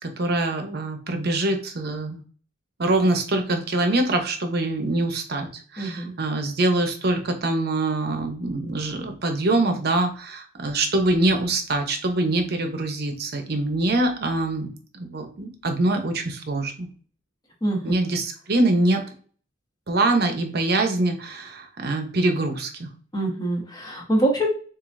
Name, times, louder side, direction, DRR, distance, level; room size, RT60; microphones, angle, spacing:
voice 1, 0.0-2.2 2.8-16.9 17.8-19.0 19.9-22.9, right 2 dB, 60° right, 5 dB, 0.9 m, -24 dB
voice 2, 5.8-6.1 17.6-17.9 23.1-24.5, right 1 dB, 20° left, -1 dB, 1.3 m, -24 dB
7.2 x 2.7 x 2.6 m, 0.42 s
head